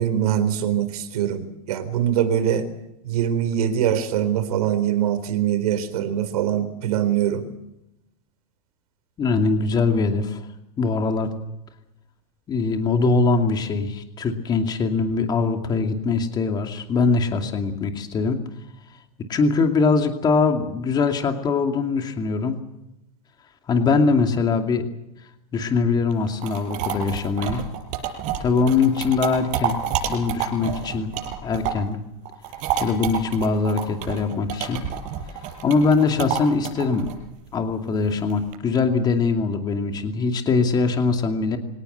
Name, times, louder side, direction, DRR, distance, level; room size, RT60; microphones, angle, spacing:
voice 1, 0.0-2.7 3.0-7.5, right 10 dB, 80° right, 11 dB, 4.1 m, -23 dB
voice 2, 9.2-10.4 10.8-11.3 12.5-18.4 19.3-22.6 23.7-24.8 25.5-27.6 28.4-29.8 30.0-31.1 31.4-32.0 32.8-34.8 35.6-37.1 37.5-41.6, left 4 dB, 20° left, 5 dB, 2.5 m, -22 dB
sound 1, 26.1-31.9 32.2-38.5, right 9 dB, 40° right, 6.3 m, -29 dB
25.0 x 18.0 x 8.1 m, 0.86 s
supercardioid pair, 150°, 19 cm